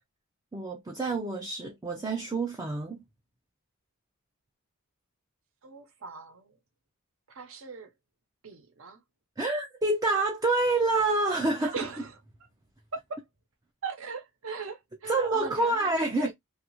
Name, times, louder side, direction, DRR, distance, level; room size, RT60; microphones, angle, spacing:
voice 1, 0.5-3.0 9.4-11.7 15.1-16.3, right 2 dB, 15° right, 0.3 m, -27 dB
voice 2, 5.6-6.5 7.3-7.9 8.4-9.0 11.6-12.2 12.9-13.2 13.8-16.3, right 4 dB, 70° right, 0.8 m, -39 dB
2.7 x 2.4 x 2.8 m
head